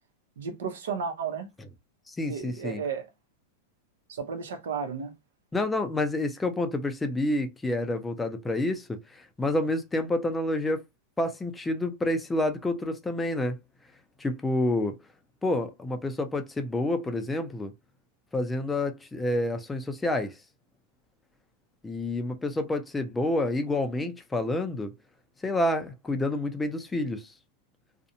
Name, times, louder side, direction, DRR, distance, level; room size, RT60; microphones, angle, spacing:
voice 1, 0.4-1.5 2.3-3.1 4.1-5.1, right 6 dB, 85° right, 0.7 m, -33 dB
voice 2, 2.1-2.8 5.5-10.8 11.2-13.6 14.2-15.0 15.4-17.7 18.3-20.4 21.8-24.9 25.4-27.3, left 1 dB, 10° left, 0.3 m, -28 dB
2.5 x 2.0 x 2.7 m
supercardioid pair, 160°, 0 cm